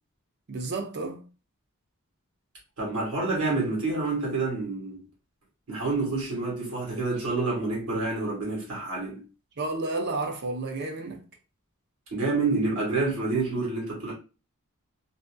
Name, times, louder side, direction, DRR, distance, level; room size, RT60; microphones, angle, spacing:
voice 1, 0.5-1.2 9.6-11.2, right 2 dB, 50° right, 0.6 m, -31 dB
voice 2, 2.8-5.0 5.7-9.2 12.1-14.1, right 3 dB, 85° right, 1.4 m, -28 dB
2.6 x 2.4 x 2.2 m
head